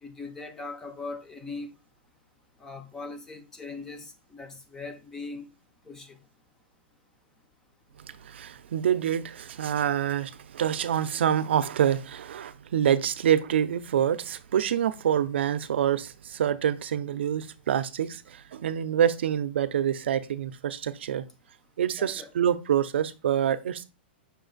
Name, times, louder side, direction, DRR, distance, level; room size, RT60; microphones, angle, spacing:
voice 1, 0.0-1.8 2.6-5.5 5.9-6.2 22.0-22.3, left 3 dB, 10° left, 0.3 m, -40 dB
voice 2, 8.1-21.2 21.8-23.8, right 9 dB, 85° right, 0.4 m, -26 dB
5.6 x 2.4 x 3.9 m
supercardioid pair, 175°, 6 cm